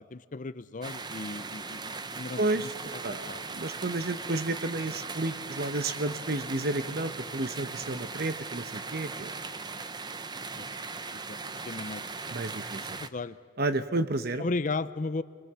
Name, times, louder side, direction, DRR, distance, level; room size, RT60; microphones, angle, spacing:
voice 1, 0.0-3.0 3.3-3.6 10.5-10.7 11.3-11.4 11.6-12.3 13.0-13.4 14.4-15.2, left 3 dB, 40° left, 14 dB, 0.5 m, -35 dB
sound 1, 0.8-13.1, right 4 dB, 20° right, 0.7 m, -39 dB
voice 2, 2.4-2.7 3.0-9.3 12.3-13.0 13.6-14.4, right 2 dB, 50° right, 11 dB, 1.1 m, -31 dB
29.0 x 22.0 x 6.9 m, 2.2 s
head